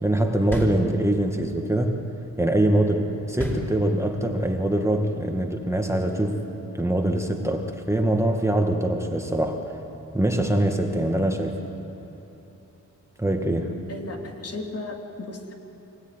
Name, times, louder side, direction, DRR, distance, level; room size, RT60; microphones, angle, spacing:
voice 1, 0.0-2.0 2.4-6.4 6.7-9.6 10.1-11.6 13.2-13.8, right 1 dB, 10° right, 3 dB, 1.9 m, -23 dB
sound 1, 0.5-1.4 3.4-4.3, right 1 dB, 5° left, 4.1 m, -32 dB
voice 2, 13.9-15.5, left 2 dB, 50° left, 1 dB, 3.3 m, -35 dB
25.0 x 16.5 x 9.6 m, 3.0 s
cardioid pair, 90°, 31 cm